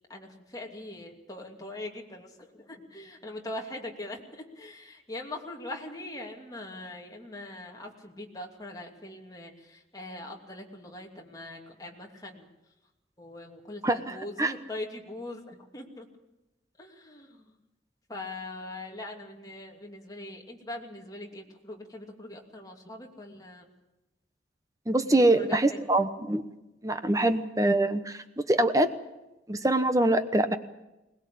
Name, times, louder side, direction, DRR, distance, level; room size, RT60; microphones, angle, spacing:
voice 1, 0.1-12.5 13.2-16.1 16.8-17.6 18.1-23.7 25.1-25.8 27.1-27.2, left 2 dB, 20° left, 1 dB, 2.8 m, -42 dB
voice 2, 13.8-14.5 24.9-26.4 26.8-28.9 29.5-30.6, right 1 dB, 20° right, 10 dB, 1.0 m, -24 dB
21.0 x 20.5 x 8.5 m, 1.0 s
head